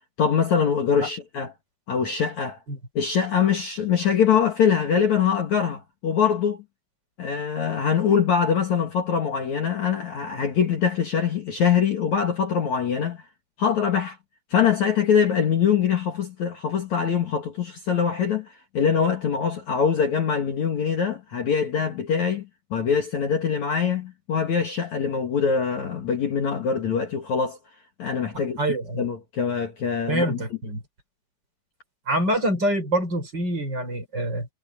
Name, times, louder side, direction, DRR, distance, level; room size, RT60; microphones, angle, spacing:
voice 1, 0.2-1.5 1.9-2.6 2.9-6.6 7.2-13.2 13.6-14.2 14.5-27.6 28.0-30.4, left 7 dB, 50° left, 3.0 m, -23 dB
voice 2, 28.6-29.1 30.1-30.8 32.1-34.5, right 1 dB, 25° right, 6.0 m, -25 dB
omnidirectional pair, 4.8 m